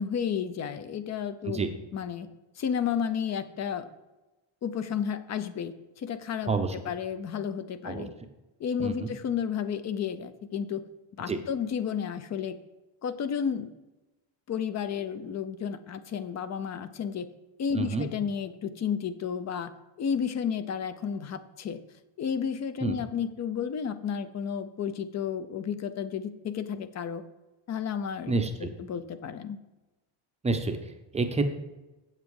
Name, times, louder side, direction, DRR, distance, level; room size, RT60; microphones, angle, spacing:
voice 1, 0.0-1.6 1.9-2.3 2.6-3.9 4.6-8.1 8.6-10.8 11.2-12.6 13.0-13.7 14.5-17.3 17.6-19.7 20.0-21.8 22.2-27.2 27.7-28.3 28.6-29.6, left 7 dB, 35° left, 12 dB, 0.5 m, -32 dB
voice 2, 17.7-18.1 22.8-23.0 28.3-28.7 30.4-31.5, right 3 dB, 15° right, 6 dB, 0.6 m, -28 dB
7.8 x 7.4 x 4.7 m, 1.1 s
cardioid pair, 155°, 49 cm